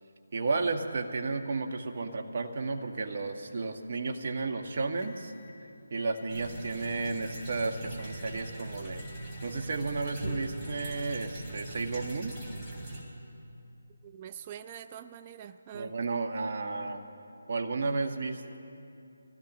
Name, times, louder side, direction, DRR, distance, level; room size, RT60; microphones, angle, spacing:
voice 1, 0.3-5.3 5.9-9.0 9.4-12.3 15.7-17.0 17.5-18.6, right 3 dB, 45° right, 4 dB, 1.4 m, -33 dB
sound 1, 4.6-6.6 7.0-7.6 8.0-8.6 9.0-9.6 10.4-10.7, left 4 dB, 35° left, 1.5 m, -56 dB
sound 2, 6.3-13.0, right 1 dB, 10° right, 3.3 m, -40 dB
voice 2, 14.0-15.9, right 9 dB, 25° right, 11 dB, 0.3 m, -44 dB
25.0 x 16.5 x 3.0 m, 2.8 s
figure-of-eight pair, 160°, 0 cm